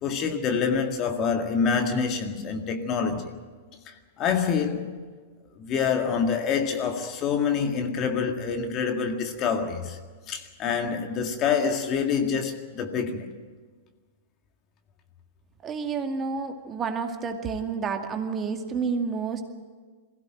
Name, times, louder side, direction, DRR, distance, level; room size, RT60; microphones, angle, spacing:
voice 1, 0.0-3.4 3.9-5.0 5.6-10.0 10.3-13.4, left 6 dB, 35° left, 2.0 m, -26 dB
voice 2, 15.6-19.5, right 5 dB, 25° right, 2.2 m, -30 dB
22.0 x 16.0 x 9.1 m
hypercardioid pair, 105°, 0 cm